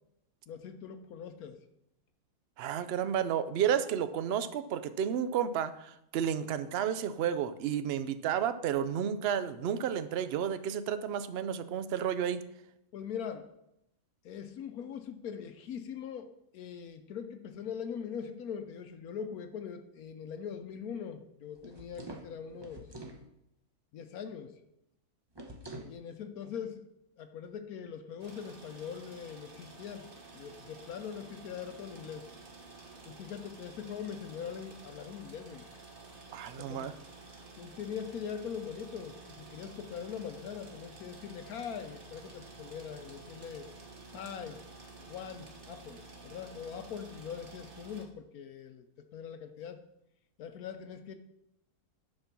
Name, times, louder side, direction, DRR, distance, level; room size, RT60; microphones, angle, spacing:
voice 1, 0.5-1.6 12.9-13.5 14.2-22.9 23.9-24.6 25.8-26.9 27.2-32.3 33.1-35.6 36.6-36.9 37.6-43.7 44.1-44.6 45.0-48.9 49.1-49.8 50.4-51.1, left 7 dB, 70° left, 8 dB, 1.1 m, -42 dB
voice 2, 2.6-12.4 36.3-36.9, right 9 dB, 75° right, 13 dB, 0.5 m, -31 dB
sound 1, 21.6-23.2 25.3-26.0, right 1 dB, 20° right, 0.8 m, -46 dB
sound 2, 28.2-48.0, right 3 dB, 35° right, 1.3 m, -51 dB
10.5 x 4.5 x 5.9 m, 0.82 s
omnidirectional pair, 1.7 m